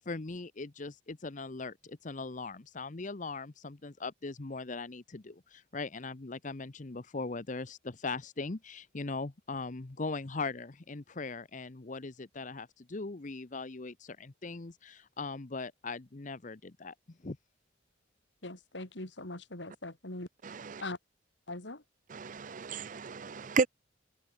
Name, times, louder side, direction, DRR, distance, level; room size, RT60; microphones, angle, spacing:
voice 1, 0.1-16.9 17.2-17.4, left 3 dB, 45° left, 0.9 m, -40 dB
voice 2, 18.4-20.3 20.8-21.0 21.5-21.8, left 2 dB, 75° left, 3.8 m, -41 dB
voice 3, 20.4-20.8 22.1-23.7, right 4 dB, 45° right, 0.5 m, -33 dB
open air
head